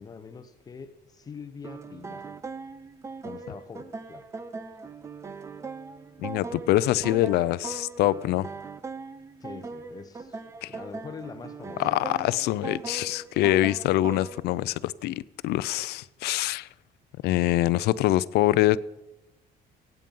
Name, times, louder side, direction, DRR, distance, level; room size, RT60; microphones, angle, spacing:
voice 1, 0.0-2.4 3.2-4.3 9.4-11.8, left 5 dB, 20° left, 0.9 m, -44 dB
sound 1, 1.6-14.4, right 4 dB, 15° right, 0.5 m, -40 dB
voice 2, 6.2-8.5 10.6-10.7 11.8-16.7 17.2-18.8, left 15 dB, 70° left, 0.6 m, -24 dB
23.5 x 9.2 x 5.4 m
cardioid pair, 180°, 18 cm